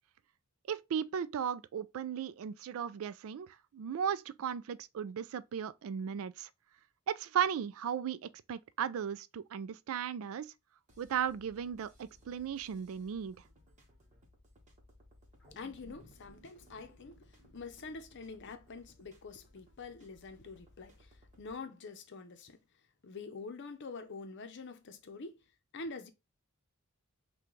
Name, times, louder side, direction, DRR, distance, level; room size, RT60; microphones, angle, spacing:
voice 1, 0.7-6.5 7.1-10.5 11.0-13.4, right 8 dB, 65° right, 0.3 m, -36 dB
sound 1, 10.9-21.6, left 1 dB, 35° right, 1.2 m, -62 dB
sound 2, 15.4-19.9 20.3-20.4, equal, 5° left, 1.5 m, -62 dB
voice 2, 15.6-21.1 21.4-22.6 23.0-25.4 25.7-26.1, left 4 dB, 55° left, 0.7 m, -46 dB
5.9 x 2.3 x 3.1 m
head